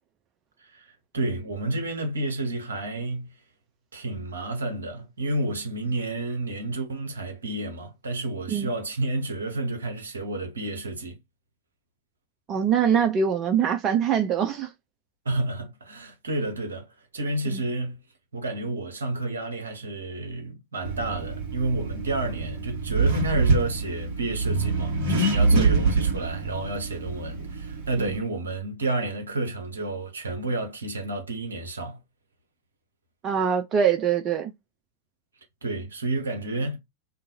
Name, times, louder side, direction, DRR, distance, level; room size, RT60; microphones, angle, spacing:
voice 1, 1.1-3.3 3.9-11.2 15.2-16.9 17.1-18.0 18.3-32.0 35.6-36.8, right 2 dB, 70° right, 0.8 m, -30 dB
voice 2, 12.5-14.7 17.5-17.6 25.5-25.7 28.0-28.1 33.2-34.5, right 7 dB, 30° right, 0.4 m, -23 dB
Accelerating revving vroom, 20.9-28.2, right 3 dB, 45° right, 1.2 m, -25 dB
2.5 x 2.3 x 2.7 m
figure-of-eight pair, 90°, 0 cm